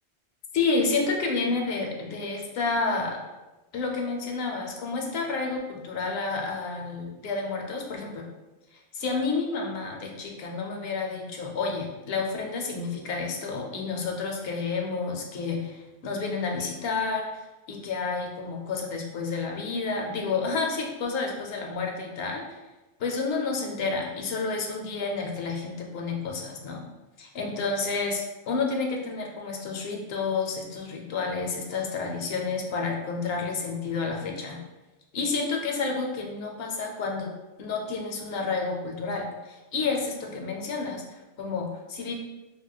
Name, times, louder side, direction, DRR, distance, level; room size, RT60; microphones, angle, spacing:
voice 1, 0.5-3.2 3.7-8.2 8.9-17.4 17.7-22.6 23.0-26.9 27.2-34.6 35.1-37.3 37.6-42.1, left 4 dB, 75° left, 1 dB, 0.8 m, -30 dB
4.5 x 2.1 x 2.3 m, 1.1 s
omnidirectional pair, 1.0 m